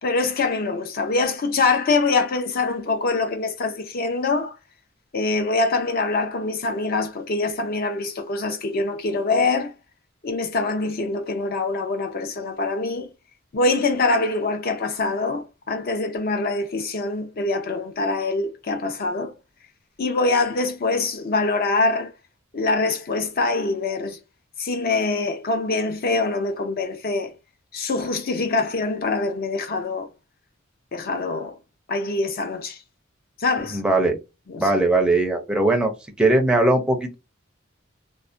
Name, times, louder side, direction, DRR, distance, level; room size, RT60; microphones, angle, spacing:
voice 1, 0.0-4.5 5.1-9.7 10.2-13.1 13.5-19.3 20.0-22.1 22.5-24.2 24.6-27.3 27.7-30.1 30.9-31.5 31.9-32.8 33.4-33.8 34.5-34.7, left 3 dB, 50° left, 0.5 m, -24 dB
voice 2, 33.7-34.2 34.6-35.9 36.2-37.1, right 2 dB, 5° right, 0.5 m, -19 dB
2.4 x 2.1 x 2.5 m
head